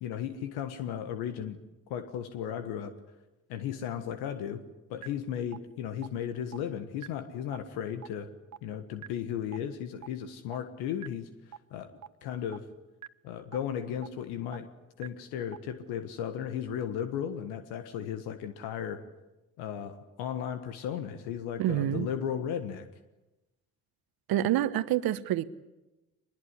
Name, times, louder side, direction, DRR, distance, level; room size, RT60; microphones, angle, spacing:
voice 1, 0.0-1.6 1.9-2.9 3.5-4.6 4.9-8.3 8.6-11.9 12.2-12.7 13.2-14.7 15.0-19.0 19.6-22.9, left 9 dB, 75° left, 9 dB, 1.5 m, -35 dB
sound 1, 5.0-5.1 5.5-5.6 6.0-6.1 6.5-6.6 7.0-7.1 7.5-7.6 8.0-8.1 8.5-8.6 9.0-9.1 9.5-9.6 10.0-10.1 10.5-10.6 11.0-11.1 11.5-11.6 12.0-12.1 12.5-12.6 13.0-13.1 13.5-13.6 14.0-14.1 14.5-14.6 15.0-15.1 15.5-15.6, right 10 dB, 45° right, 1.1 m, -42 dB
voice 2, 21.6-22.1 24.3-25.4, right 12 dB, 65° right, 14 dB, 1.3 m, -27 dB
23.5 x 21.0 x 9.7 m, 1.1 s
hypercardioid pair, 45°, 39 cm